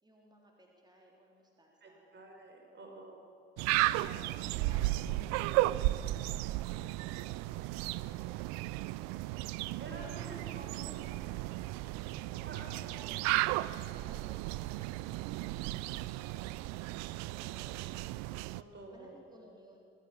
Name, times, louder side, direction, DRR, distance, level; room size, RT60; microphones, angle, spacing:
voice 1, 0.0-2.1 2.9-3.2 3.7-7.4 9.9-11.7 12.0-16.0 17.2-18.1 18.9-19.9, right 1 dB, 15° right, -1 dB, 3.7 m, -59 dB
voice 2, 1.8-3.2 8.0-8.2 9.8-10.7 12.4-13.1 18.5-19.2, right 2 dB, 35° right, 2 dB, 5.0 m, -50 dB
sound 1, 3.6-18.6, right 17 dB, 60° right, 0.5 m, -34 dB
21.5 x 14.0 x 8.8 m, 2.4 s
figure-of-eight pair, 55°, 31 cm